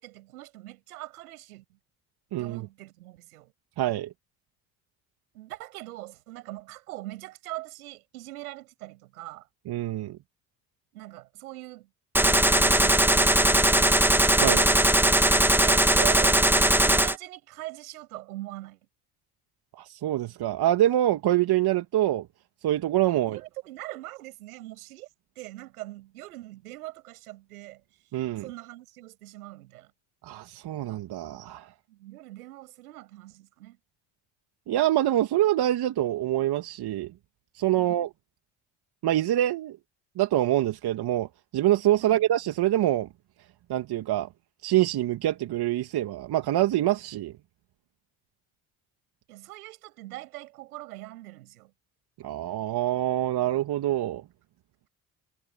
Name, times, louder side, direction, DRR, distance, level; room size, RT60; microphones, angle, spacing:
voice 1, 0.0-1.8 2.4-3.5 5.3-9.5 10.9-11.9 12.2-14.1 15.5-16.5 16.8-18.8 23.3-25.1 25.4-27.8 28.4-29.9 31.9-33.8 37.7-38.0 42.0-42.3 49.3-51.7, right 17 dB, 85° right, 7.1 m, -41 dB
voice 2, 2.3-2.7 3.8-4.1 9.7-10.2 14.4-14.7 19.8-22.3 22.6-23.4 28.1-28.5 30.2-31.7 34.7-37.1 37.5-38.1 39.0-39.8 40.2-41.3 41.5-43.1 43.7-44.3 44.6-47.3 52.2-54.2, right 13 dB, 60° right, 2.5 m, -25 dB
Gunshot gunfire, 12.1-17.1, right 1 dB, 5° right, 1.5 m, -20 dB
hypercardioid pair, 55°, 43 cm